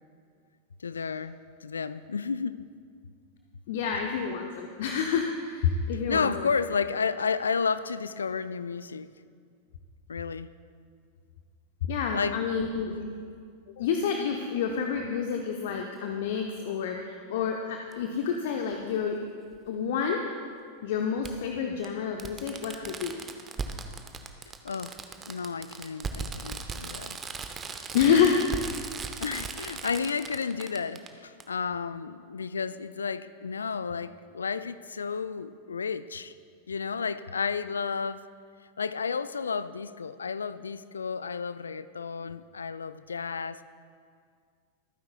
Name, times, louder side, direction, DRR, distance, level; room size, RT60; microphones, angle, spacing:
voice 1, 0.8-2.6 6.1-9.1 10.1-10.5 12.1-12.4 24.6-25.0 25.3-27.2 29.2-36.3 36.7-38.3 38.8-43.6, left 5 dB, 70° left, 0.3 m, -32 dB
voice 2, 3.7-6.5 11.8-13.2 13.8-19.2 19.7-20.3 20.8-23.2 27.9-28.5, left 6 dB, 55° left, 0.7 m, -28 dB
Fireworks, 17.9-18.0 19.5-19.6 21.2-21.3 21.8-21.9 22.2-31.1 31.4-31.5, right 5 dB, 20° right, 0.8 m, -37 dB
24.0 x 9.5 x 2.3 m
figure-of-eight pair, 90°, 0 cm